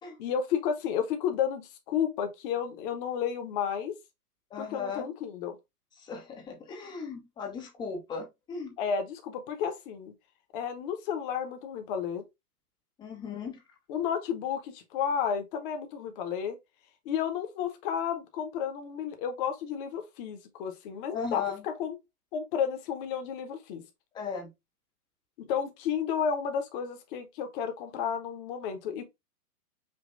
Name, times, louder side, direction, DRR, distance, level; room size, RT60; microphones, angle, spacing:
voice 1, 0.2-3.9 4.6-5.6 8.8-10.1 10.5-12.2 13.9-16.6 17.0-22.0 22.3-23.8 25.4-29.0, left 7 dB, 35° left, 0.9 m, -32 dB
voice 2, 4.5-5.1 6.0-8.8 13.0-13.6 21.1-21.7 24.1-24.5, left 5 dB, 10° left, 0.6 m, -37 dB
5.3 x 2.6 x 2.5 m
figure-of-eight pair, 115°, 46 cm